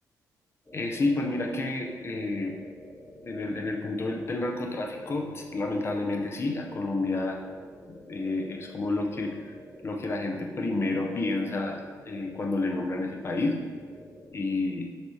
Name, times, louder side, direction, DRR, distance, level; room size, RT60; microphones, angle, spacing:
sound 1, 0.6-14.3, equal, 15° left, 1.2 m, -49 dB
voice 1, 0.7-2.6 3.2-7.4 7.9-9.4 9.8-13.6 14.3-14.8, left 2 dB, 40° left, 1 dB, 0.7 m, -30 dB
5.9 x 2.9 x 3.1 m, 1.4 s
cardioid pair, 90°, 7 cm